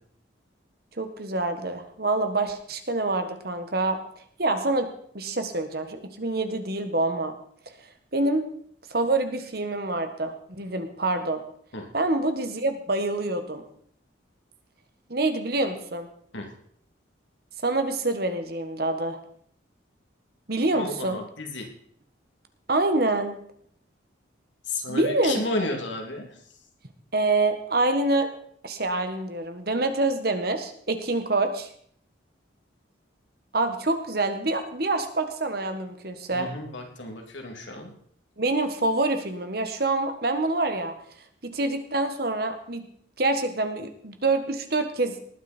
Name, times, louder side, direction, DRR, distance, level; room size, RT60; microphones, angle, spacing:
voice 1, 1.0-4.0 4.4-4.9 5.1-7.3 8.1-8.4 8.9-11.4 11.9-13.6 15.1-16.1 17.6-19.2 20.5-21.2 22.7-23.4 24.9-25.4 27.1-28.3 28.6-31.7 33.5-36.5 38.4-40.9 41.4-42.8 43.2-45.2, right 2 dB, 50° right, 8 dB, 1.5 m, -26 dB
voice 2, 20.7-21.7 24.7-26.4 36.3-37.9, left 2 dB, 75° left, 3 dB, 2.9 m, -32 dB
19.0 x 9.5 x 4.5 m, 0.63 s
head